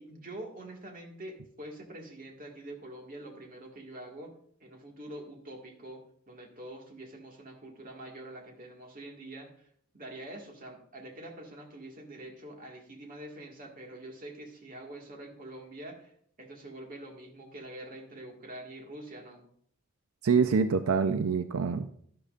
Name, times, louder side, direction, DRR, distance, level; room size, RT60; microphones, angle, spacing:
voice 1, 0.0-4.3 4.6-16.1 16.4-19.4, right 1 dB, 40° right, 1 dB, 1.9 m, -45 dB
voice 2, 20.2-22.0, right 5 dB, 85° right, 9 dB, 0.5 m, -26 dB
11.5 x 11.5 x 2.5 m, 0.63 s
head